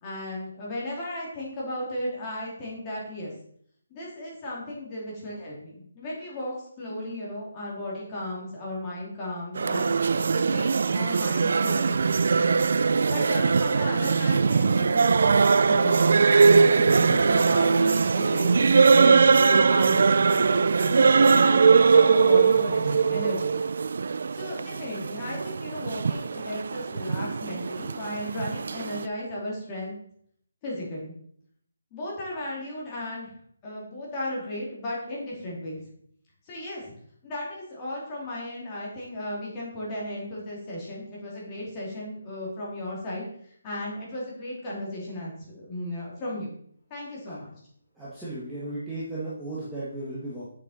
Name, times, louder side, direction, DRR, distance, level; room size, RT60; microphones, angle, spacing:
voice 1, 0.0-3.3 3.9-9.9 10.3-12.4 13.1-16.2 16.7-23.6 24.3-30.0 30.6-31.1 31.9-33.3 33.6-35.8 36.5-36.9 37.2-43.2 43.6-46.5 46.9-47.5, left 1 dB, 15° left, -5 dB, 2.7 m, -35 dB
sound 1, 9.6-29.1, right 5 dB, 50° right, 0.3 m, -21 dB
voice 2, 47.9-50.5, right 2 dB, 5° right, -11 dB, 1.4 m, -35 dB
8.1 x 7.3 x 4.2 m, 0.64 s
hypercardioid pair, 175°, 0 cm